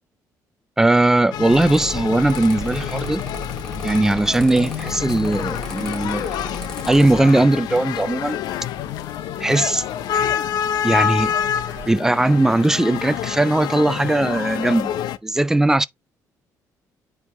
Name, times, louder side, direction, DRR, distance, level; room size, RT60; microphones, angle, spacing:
voice 1, 0.8-3.2 3.8-6.3 6.9-8.4 9.4-9.8 10.8-11.3 11.9-14.9 15.2-15.9, right 2 dB, 5° right, 0.3 m, -18 dB
sound 1, 1.3-15.2, left 10 dB, 75° left, 0.6 m, -27 dB
Mechanical fan, 1.5-7.2, left 1 dB, 10° left, 2.0 m, -35 dB
sound 2, 2.3-11.9, right 5 dB, 30° right, 1.6 m, -45 dB
9.5 x 3.4 x 3.1 m
cardioid pair, 165°, 7 cm